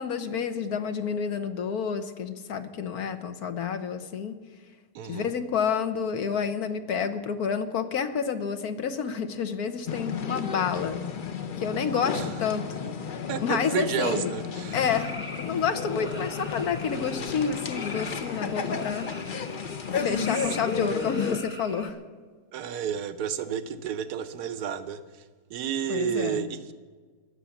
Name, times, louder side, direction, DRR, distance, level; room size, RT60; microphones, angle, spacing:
voice 1, 0.0-4.3 5.1-11.0 11.6-12.6 13.2-14.3 14.7-19.1 19.4-19.6 19.9-22.0 25.9-26.5, left 6 dB, 70° left, 8 dB, 1.5 m, -29 dB
voice 2, 4.9-5.3 12.1-12.4 13.3-14.8 22.5-25.2 25.5-26.7, right 8 dB, 85° right, 11 dB, 1.3 m, -31 dB
sound 1, 9.9-21.4, left 6 dB, 45° left, 0.7 m, -33 dB
sound 2, 14.7-21.9, left 1 dB, 10° left, 0.9 m, -43 dB
21.5 x 7.9 x 7.1 m, 1.5 s
omnidirectional pair, 1.7 m